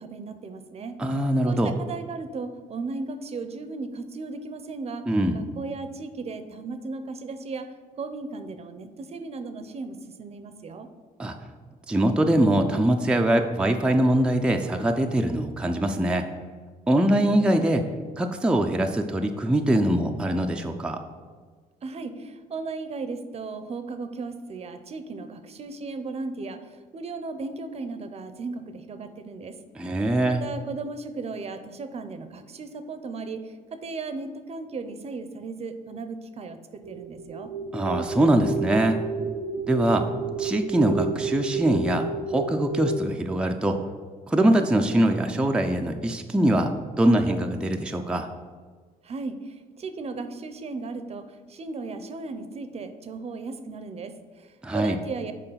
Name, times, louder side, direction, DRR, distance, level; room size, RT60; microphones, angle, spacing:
voice 1, 0.0-1.0 1.4-10.9 21.8-29.6 30.3-37.5 49.0-55.3, right 3 dB, 45° right, 10 dB, 0.7 m, -36 dB
voice 2, 1.0-1.7 5.1-5.4 11.2-11.3 11.9-16.3 16.9-17.8 18.2-21.0 29.8-30.4 37.7-39.0 39.7-40.0 40.4-43.8 44.3-46.7 47.0-48.3 54.6-55.0, right 1 dB, 5° right, 3 dB, 0.5 m, -23 dB
sound 1, 36.8-43.1, right 4 dB, 80° right, 0.5 m, -31 dB
6.7 x 4.9 x 5.7 m, 1.5 s
cardioid pair, 120°, 15 cm